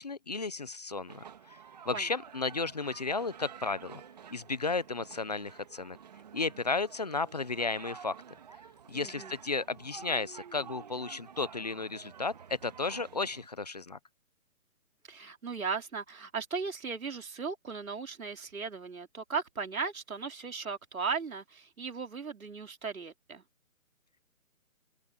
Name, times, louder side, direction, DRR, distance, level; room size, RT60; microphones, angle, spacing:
voice 1, 0.0-4.0 4.3-6.0 6.3-8.2 8.9-14.0, left 3 dB, 30° left, 0.8 m, -34 dB
sound 1, 1.1-13.5, right 7 dB, 30° right, 2.4 m, -50 dB
voice 2, 8.9-9.3 15.1-23.4, right 5 dB, 70° right, 4.0 m, -37 dB
open air
hypercardioid pair, 170°, 43 cm